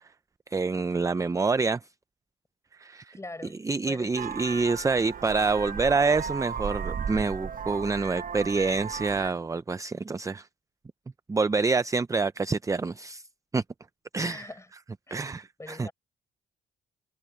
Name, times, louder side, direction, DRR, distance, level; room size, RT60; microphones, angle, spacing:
voice 1, 0.5-1.8 2.8-3.2 3.6-10.5 11.3-13.2 13.5-13.6 14.1-14.5 15.1-15.9, right 4 dB, 15° right, 0.5 m, -27 dB
voice 2, 3.1-3.6 3.9-4.4 14.2-14.7 15.1-15.3 15.6-15.9, left 2 dB, 15° left, 5.8 m, -42 dB
Vehicle horn car horn honking, 4.2-9.3, right 7 dB, 45° right, 0.8 m, -35 dB
cardioid pair, 90°, 20 cm